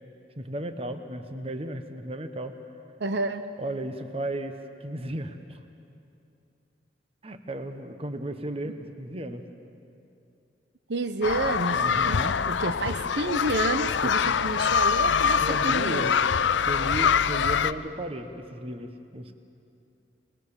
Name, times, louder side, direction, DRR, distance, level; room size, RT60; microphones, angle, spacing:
voice 1, 0.4-2.5 3.6-5.6 7.2-9.4 11.7-12.4 14.2-14.4 15.4-16.2 16.6-19.3, right 1 dB, 30° right, 8 dB, 1.2 m, -35 dB
voice 2, 3.0-3.4 8.6-8.7 10.9-16.1, right 2 dB, 70° right, 9 dB, 0.8 m, -30 dB
sound 1, 11.2-17.7, left 7 dB, 80° left, 0.5 m, -24 dB
28.0 x 20.0 x 7.3 m, 2.6 s
head